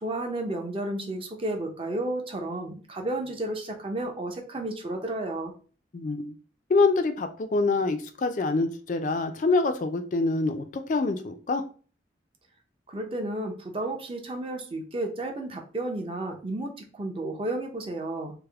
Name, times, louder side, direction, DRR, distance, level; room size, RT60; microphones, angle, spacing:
voice 1, 0.0-5.5 12.9-18.3, right 1 dB, 30° right, 3 dB, 0.6 m, -32 dB
voice 2, 5.9-6.3 6.7-11.6, left 3 dB, 45° left, 8 dB, 0.3 m, -25 dB
3.4 x 2.1 x 3.4 m, 0.39 s
head